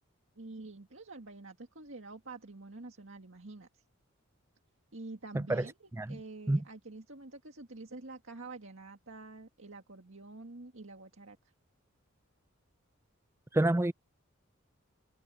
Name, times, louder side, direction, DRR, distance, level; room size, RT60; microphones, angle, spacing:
voice 1, 0.4-3.8 4.9-5.7 6.1-11.4, right 3 dB, 65° right, 2.0 m, -47 dB
voice 2, 5.3-5.7 6.0-6.2 6.5-6.6 13.5-13.9, right 1 dB, 10° right, 0.3 m, -28 dB
head